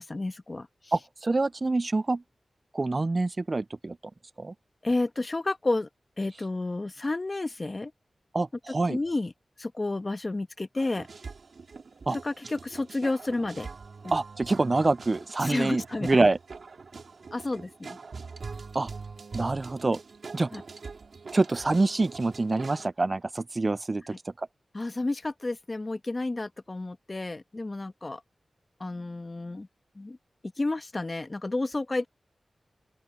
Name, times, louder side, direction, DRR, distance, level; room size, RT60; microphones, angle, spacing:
voice 1, 0.0-0.9 4.8-5.9 6.2-7.9 8.9-9.3 9.6-11.1 12.1-13.7 14.0-14.1 15.4-16.2 17.3-18.0 20.5-20.6 24.7-28.2 28.8-29.7 29.9-30.2 30.6-32.1, left 2 dB, 40° left, 1.5 m, -31 dB
voice 2, 0.9-2.2 2.7-4.0 4.4-4.5 8.3-9.0 12.1-12.2 14.1-16.4 18.7-18.9 19.3-20.0 20.3-20.5 21.3-24.1, right 3 dB, 45° right, 0.3 m, -26 dB
sound 1, 10.8-22.9, right 4 dB, 75° right, 2.9 m, -43 dB
open air
cardioid pair, 50°, 0 cm